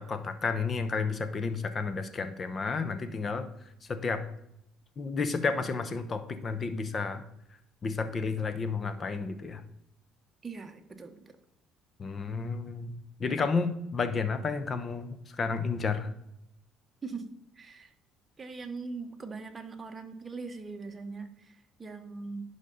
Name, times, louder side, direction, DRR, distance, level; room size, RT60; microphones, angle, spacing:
voice 1, 0.0-3.5 3.9-4.2 5.0-7.2 7.8-9.6 12.0-12.9 13.2-16.1, left 4 dB, 35° left, 10 dB, 0.8 m, -31 dB
voice 2, 10.4-11.3 17.0-17.3 17.6-17.9 18.4-22.4, right 4 dB, 25° right, 5 dB, 1.0 m, -41 dB
10.5 x 5.4 x 3.9 m, 0.78 s
cardioid pair, 100°, 0 cm